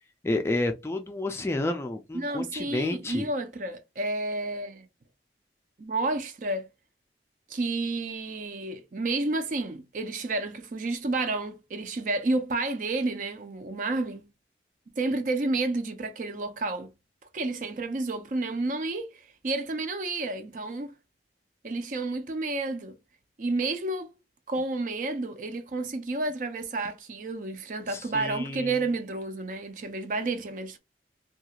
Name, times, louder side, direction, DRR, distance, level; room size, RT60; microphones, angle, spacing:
voice 1, 0.2-3.2 27.9-28.7, left 2 dB, 15° left, 0.3 m, -30 dB
voice 2, 2.1-4.9 5.8-6.7 7.5-14.3 15.0-16.9 17.3-20.9 21.6-23.0 23.4-24.1 24.5-30.8, right 2 dB, 45° right, 0.4 m, -30 dB
2.4 x 2.3 x 2.8 m
head